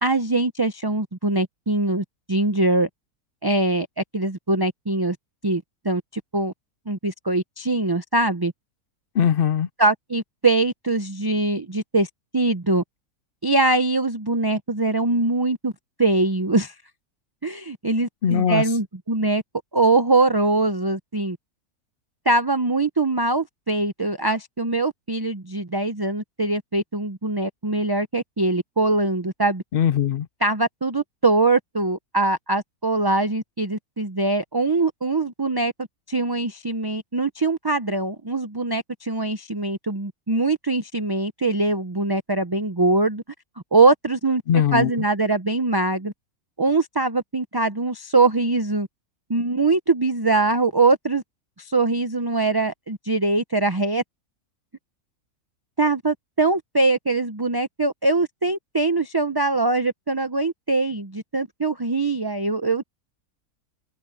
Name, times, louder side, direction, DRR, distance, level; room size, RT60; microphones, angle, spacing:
voice 1, 0.0-2.9 3.4-5.2 5.4-6.5 6.9-8.5 9.8-12.1 12.3-12.8 13.4-15.7 16.0-16.7 17.4-19.4 19.7-21.4 22.2-29.6 30.4-43.2 43.7-46.1 46.6-48.9 49.3-51.2 51.6-54.0 55.8-62.8, right 2 dB, 20° right, 0.6 m, -22 dB
voice 2, 9.1-9.7 18.2-18.6 29.7-30.3 44.5-44.9, left 9 dB, 65° left, 0.5 m, -20 dB
omnidirectional pair, 1.6 m